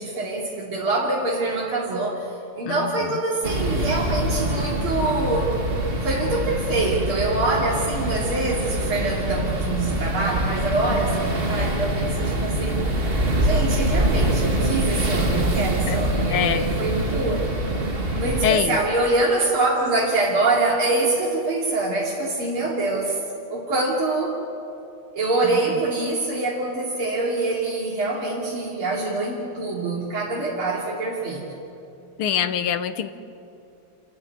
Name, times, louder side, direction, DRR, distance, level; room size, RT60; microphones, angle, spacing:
voice 1, 0.0-5.5 6.0-12.9 13.4-17.5 18.2-23.2 23.5-24.4 25.1-31.5, right 2 dB, 85° right, -5 dB, 3.7 m, -25 dB
sound 1, 3.4-18.5, right 1 dB, 30° right, 2.0 m, -24 dB
voice 2, 16.3-16.6 18.4-18.8 32.2-33.1, left 9 dB, 90° left, 12 dB, 1.8 m, -24 dB
28.5 x 14.5 x 9.6 m, 2.7 s
omnidirectional pair, 2.3 m